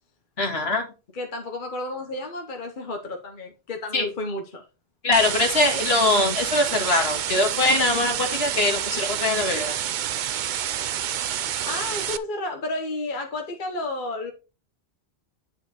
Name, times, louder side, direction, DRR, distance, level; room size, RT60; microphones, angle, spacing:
voice 1, 0.4-0.9 3.9-4.1 5.0-9.8, left 2 dB, 75° left, 2.1 m, -22 dB
voice 2, 1.1-4.6 11.6-14.3, left 2 dB, 50° left, 1.3 m, -32 dB
sound 1, 5.1-12.2, right 10 dB, 55° right, 0.6 m, -28 dB
9.4 x 4.8 x 4.1 m
omnidirectional pair, 1.1 m